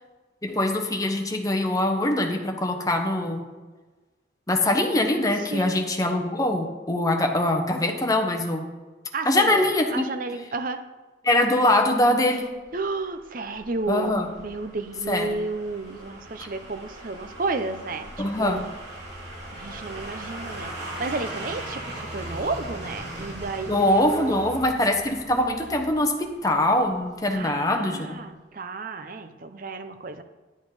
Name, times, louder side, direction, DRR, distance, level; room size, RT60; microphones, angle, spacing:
voice 1, 0.4-3.5 4.5-8.7 9.2-10.0 11.2-12.5 13.9-14.3 15.1-15.3 18.2-18.7 23.7-28.2, left 1 dB, 20° left, 3 dB, 1.0 m, -23 dB
voice 2, 5.4-5.8 9.1-10.8 12.7-18.6 19.5-24.7 27.3-30.2, right 3 dB, 50° right, 9 dB, 0.7 m, -32 dB
sound 1, 12.5-27.4 27.7-27.8, right 1 dB, 65° right, 3.0 m, -39 dB
11.0 x 7.2 x 4.9 m, 1.3 s
head